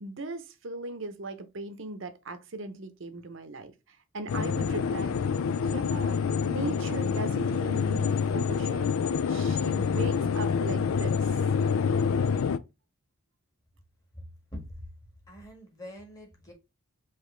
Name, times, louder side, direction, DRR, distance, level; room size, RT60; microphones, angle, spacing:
voice 1, 0.0-5.1 5.6-6.2 6.5-8.9 9.3-11.4, right 2 dB, 60° right, 0.7 m, -38 dB
sound 1, 4.3-12.6, left 6 dB, 75° left, 0.4 m, -27 dB
voice 2, 14.5-14.8 15.3-16.5, equal, 15° left, 1.5 m, -43 dB
4.9 x 3.1 x 3.2 m
head